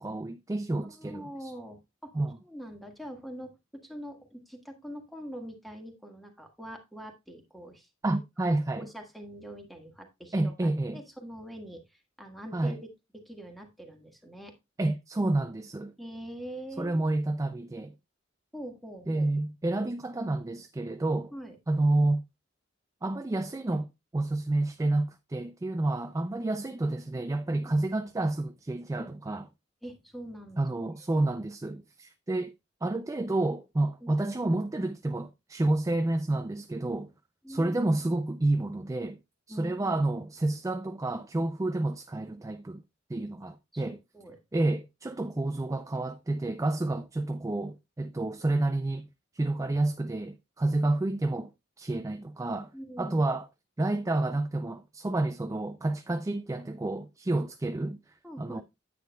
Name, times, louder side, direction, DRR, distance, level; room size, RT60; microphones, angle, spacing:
voice 1, 0.0-1.5 2.1-2.4 8.0-8.9 10.3-11.0 12.5-12.8 14.8-15.9 16.8-17.9 19.1-21.3 21.7-22.2 23.0-29.5 30.6-32.5 32.8-37.1 37.5-39.2 39.5-42.8 43.1-44.0 44.5-49.1 49.3-51.5 51.8-52.7 53.0-53.5 53.8-58.0 58.4-58.6, right 2 dB, 15° right, 0.4 m, -29 dB
voice 2, 0.9-2.1 2.4-7.9 8.8-11.8 12.2-12.8 13.1-14.5 16.0-17.1 18.5-19.3 21.3-21.6 27.7-27.8 29.8-30.6 34.0-34.3 37.4-37.8 39.5-40.0 43.4-44.4 52.7-53.3 58.2-58.6, equal, ahead, 1.6 m, -44 dB
9.5 x 8.6 x 2.3 m
head